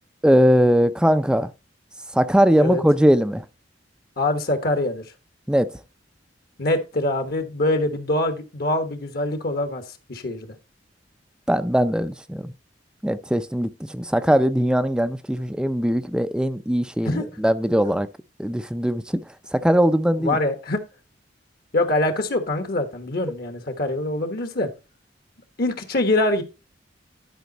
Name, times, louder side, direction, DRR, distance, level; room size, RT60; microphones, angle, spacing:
voice 1, 0.2-1.5 2.1-3.4 5.5-5.7 11.5-12.5 13.0-18.1 18.4-19.2 19.5-20.4, equal, 5° right, 0.4 m, -20 dB
voice 2, 4.2-5.0 6.6-10.5 17.0-17.3 20.2-20.8 21.7-24.7 25.6-26.4, left 2 dB, 55° left, 1.3 m, -24 dB
11.5 x 5.1 x 4.0 m
head